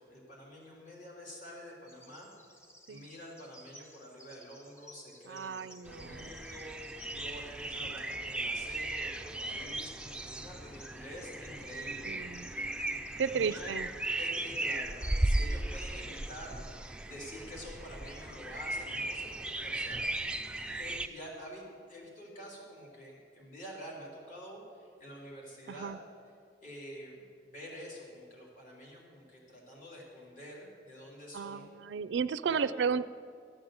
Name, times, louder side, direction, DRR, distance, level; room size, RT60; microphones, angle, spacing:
voice 1, 0.0-2.3 2.9-13.0 13.3-13.8 14.2-21.6 21.9-25.9 26.6-31.7 32.4-32.7, equal, 45° left, -4 dB, 3.6 m, -48 dB
Bird vocalization bird call bird song, 1.9-20.6, left 1 dB, 15° left, 1.2 m, -57 dB
voice 2, 5.3-6.3 12.1-12.5 13.2-13.9 25.7-26.0 31.3-33.0, right 6 dB, 80° right, 15 dB, 0.4 m, -33 dB
sound 1, 5.9-21.1, right 2 dB, 5° right, 0.4 m, -36 dB
sound 2, 10.1-22.1, left 1 dB, 90° left, 4.3 m, -62 dB
13.5 x 8.8 x 7.9 m, 2.2 s
head